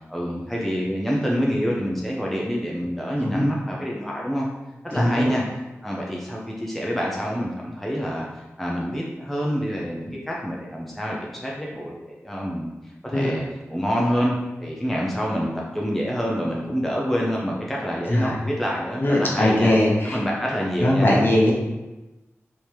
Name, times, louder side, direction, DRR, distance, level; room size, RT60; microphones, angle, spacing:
voice 1, 0.1-4.5 4.8-5.4 5.8-13.4 13.7-19.7 20.0-21.2, equal, 5° left, -3 dB, 0.6 m, -27 dB
voice 2, 4.9-5.3 13.1-13.3 18.1-18.4 19.0-20.2 20.8-21.5, left 1 dB, 45° left, -3 dB, 1.1 m, -20 dB
3.5 x 2.9 x 4.6 m, 1.1 s
wide cardioid pair, 75°, 5 cm